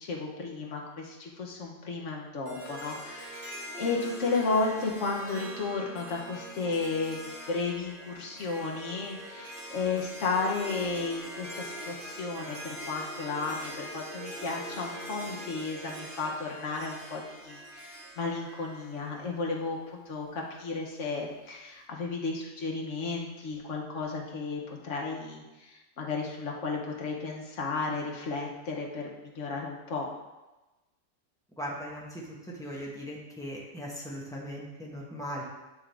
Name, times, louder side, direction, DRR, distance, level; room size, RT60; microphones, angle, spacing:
voice 1, 0.0-30.1, left 4 dB, 80° left, -1 dB, 1.4 m, -33 dB
Harp, 2.4-19.7, equal, 55° right, 1.4 m, -43 dB
voice 2, 31.6-35.4, equal, 5° left, -4 dB, 1.2 m, -39 dB
9.1 x 3.7 x 3.4 m, 1.1 s
omnidirectional pair, 1.3 m